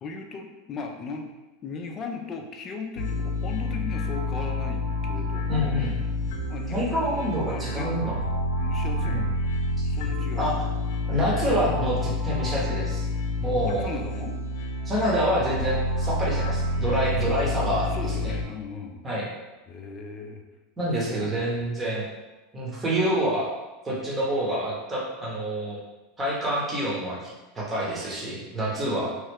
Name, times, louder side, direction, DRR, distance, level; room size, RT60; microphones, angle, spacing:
voice 1, 0.0-1.3 1.6-5.8 6.5-8.0 8.6-9.2 9.8-10.5 13.7-14.4 17.2-17.4 17.9-19.0 19.7-20.4 21.0-21.9 28.7-29.2, left 4 dB, 30° left, 3 dB, 0.4 m, -38 dB
sound 1, 3.0-18.4, left 2 dB, 85° left, 0.4 m, -28 dB
voice 2, 5.5-5.9 6.7-8.2 9.1-9.2 10.4-10.5 11.1-13.1 13.4-13.9 14.8-17.9 18.2-18.3 19.0-19.3 20.8-22.0 22.5-23.5 23.8-25.8 26.2-29.1, equal, 20° right, -5 dB, 1.0 m, -27 dB
3.0 x 2.3 x 3.4 m, 1.1 s
supercardioid pair, 125°, 0 cm